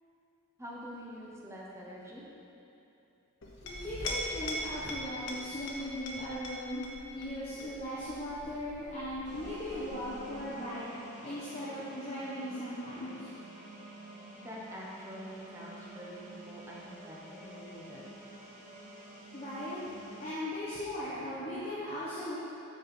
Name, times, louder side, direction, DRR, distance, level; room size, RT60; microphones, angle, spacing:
voice 1, 0.6-2.2 14.4-18.0, equal, 15° right, -5 dB, 1.0 m, -46 dB
Chink clink, 3.4-10.5, left 1 dB, 60° left, 0.9 m, -41 dB
voice 2, 3.6-6.9 7.1-10.9 11.2-13.3 19.3-19.8 20.2-22.4, equal, 30° left, -10 dB, 1.2 m, -38 dB
sound 1, 9.2-20.3, right 1 dB, 40° right, 1.3 m, -49 dB
6.5 x 6.2 x 4.3 m, 2.9 s
head